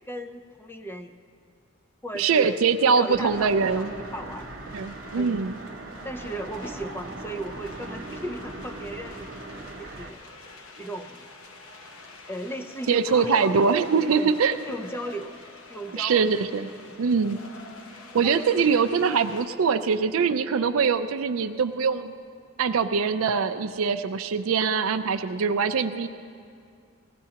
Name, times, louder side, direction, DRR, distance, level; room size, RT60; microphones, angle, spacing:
voice 1, 0.1-1.2 2.0-2.6 2.9-4.5 5.2-5.4 6.0-9.3 9.8-10.2 10.8-11.3 12.3-14.3 14.6-15.4 15.7-16.2 16.8-16.9 18.2-18.8, right 1 dB, 10° left, 6 dB, 0.5 m, -36 dB
sound 1, 2.1-19.5, left 3 dB, 80° left, 1.0 m, -47 dB
voice 2, 2.1-3.9 4.7-5.6 12.9-14.6 15.9-16.7 17.0-17.4 18.1-22.1 22.6-26.1, right 5 dB, 80° right, 8 dB, 0.4 m, -23 dB
sound 2, 3.1-10.1, right 2 dB, 55° right, 0.8 m, -40 dB
19.5 x 15.5 x 2.9 m, 2.3 s
head